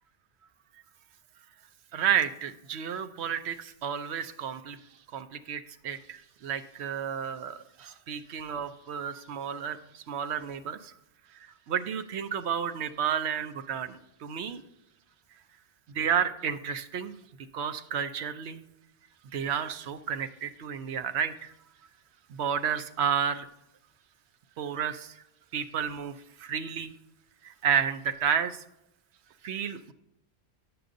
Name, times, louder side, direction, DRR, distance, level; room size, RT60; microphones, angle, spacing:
voice 1, 1.9-4.8 5.1-10.9 11.4-14.6 15.9-17.1 17.5-18.6 19.3-21.5 22.3-23.5 24.6-25.2 25.5-26.9 27.4-28.6 29.4-29.9, right 8 dB, 80° right, 9 dB, 0.9 m, -31 dB
9.3 x 7.8 x 2.6 m, 0.83 s
omnidirectional pair, 1.1 m